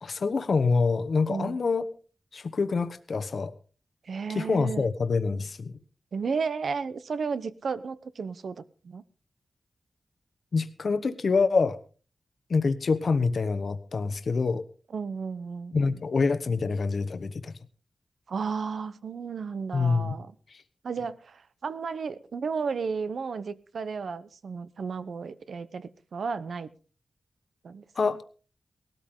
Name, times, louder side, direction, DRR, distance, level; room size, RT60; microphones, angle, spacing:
voice 1, 0.0-1.8 2.3-3.5 4.3-5.7 10.5-11.8 12.5-14.6 15.7-17.6 19.7-20.2 20.5-20.6 28.0-28.2, left 4 dB, 65° left, 10 dB, 1.0 m, -26 dB
voice 2, 4.0-4.9 6.1-9.0 14.9-16.0 18.3-20.3 20.8-26.7 27.6-28.2, right 5 dB, 80° right, 14 dB, 0.9 m, -33 dB
18.5 x 13.0 x 3.7 m, 0.38 s
cardioid pair, 65°, 0 cm